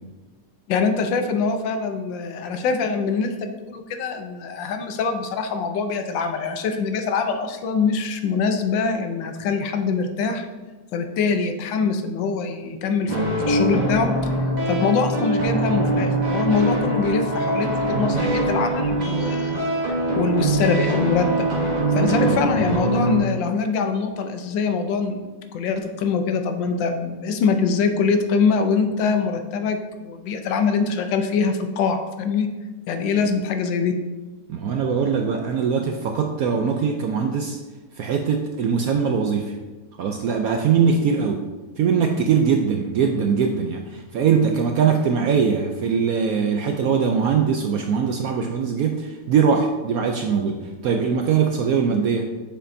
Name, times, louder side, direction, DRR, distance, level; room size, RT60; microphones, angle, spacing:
voice 1, 0.7-10.5 10.9-14.1 14.4-19.7 20.1-21.5 21.9-32.5 32.9-33.9, left 5 dB, 85° left, 6 dB, 1.4 m, -24 dB
sound 1, 13.1-23.2, right 2 dB, 25° right, 1.2 m, -23 dB
voice 2, 21.9-22.5 34.5-37.6 38.0-39.6 40.0-41.5 41.8-52.3, right 6 dB, 75° right, 3 dB, 0.8 m, -21 dB
7.6 x 6.6 x 2.6 m, 1.3 s
omnidirectional pair, 2.0 m